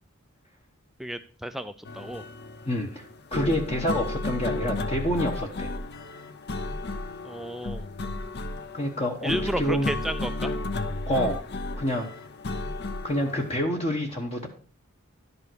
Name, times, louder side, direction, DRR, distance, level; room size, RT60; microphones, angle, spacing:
voice 1, 1.0-2.2 7.2-7.9 9.2-10.6, equal, ahead, 9 dB, 0.3 m, -32 dB
sound 1, 1.8-13.6, left 2 dB, 50° left, 0.7 m, -33 dB
voice 2, 2.6-3.0 3.3-5.7 8.7-9.9 11.1-11.4 11.8-12.1 13.0-14.5, equal, 30° left, 2 dB, 1.0 m, -27 dB
11.5 x 5.4 x 6.1 m, 0.40 s
head